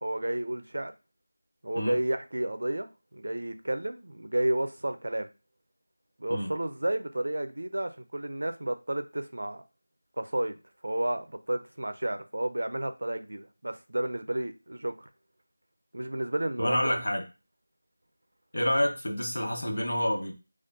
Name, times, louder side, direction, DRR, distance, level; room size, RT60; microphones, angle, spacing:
voice 1, 0.0-0.9 1.6-5.3 6.2-9.6 10.2-10.6 10.8-15.1 15.9-16.9, right 1 dB, 70° right, 9 dB, 0.5 m, -31 dB
voice 2, 16.6-17.2 18.5-20.3, left 1 dB, 75° left, 2 dB, 1.1 m, -28 dB
4.3 x 2.4 x 2.7 m, 0.30 s
figure-of-eight pair, 180°, 0 cm